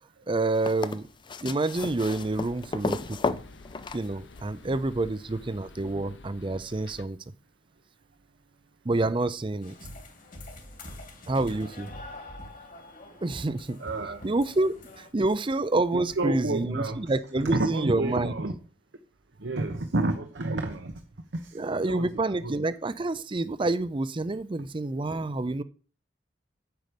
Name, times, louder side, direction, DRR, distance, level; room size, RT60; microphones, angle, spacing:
voice 1, 0.3-1.1 1.4-3.4 3.9-7.2 8.8-9.8 11.3-11.9 13.2-13.8 14.2-18.3 21.5-25.6, right 2 dB, 30° right, 0.5 m, -28 dB
sound 1, 0.5-4.6 5.9-6.0, left 3 dB, 25° left, 0.5 m, -33 dB
sound 2, 1.7-7.1, left 2 dB, 80° left, 1.0 m, -50 dB
sound 3, 9.6-15.1, left 1 dB, 45° left, 2.4 m, -45 dB
voice 2, 13.8-14.3 15.9-17.1 17.4-18.5 19.4-20.9 21.3-22.5, right 2 dB, 80° right, 1.1 m, -30 dB
9.1 x 7.9 x 5.2 m
head